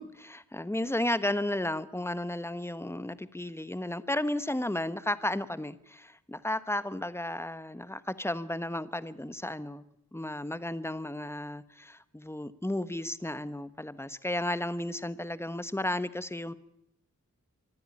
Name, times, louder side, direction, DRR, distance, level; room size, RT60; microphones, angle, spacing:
voice 1, 0.0-9.8 10.1-16.5, left 1 dB, 10° left, 14 dB, 1.2 m, -33 dB
24.5 x 13.0 x 9.9 m, 0.80 s
wide cardioid pair, 75°, 32 cm